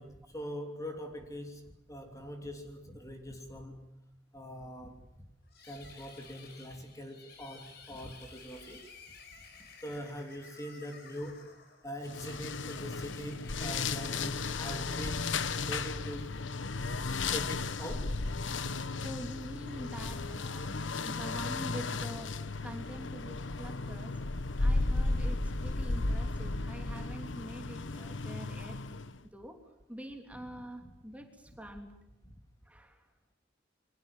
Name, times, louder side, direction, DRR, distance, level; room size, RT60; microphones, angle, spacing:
voice 1, 0.0-4.0 4.3-5.3 5.6-8.8 9.8-11.5 11.8-15.3 15.6-16.3 17.2-18.2 18.9-19.0 30.8-30.9, equal, 20° left, 4 dB, 3.1 m, -43 dB
sound 1, 5.5-16.8, left 5 dB, 60° left, 5.9 m, -55 dB
sound 2, 12.1-29.2, left 3 dB, 85° left, 1.1 m, -34 dB
voice 2, 19.0-24.1 24.6-28.8 29.3-29.6 29.9-31.9 32.7-33.0, equal, 10° right, 4 dB, 3.3 m, -46 dB
29.0 x 24.5 x 7.4 m, 0.90 s
head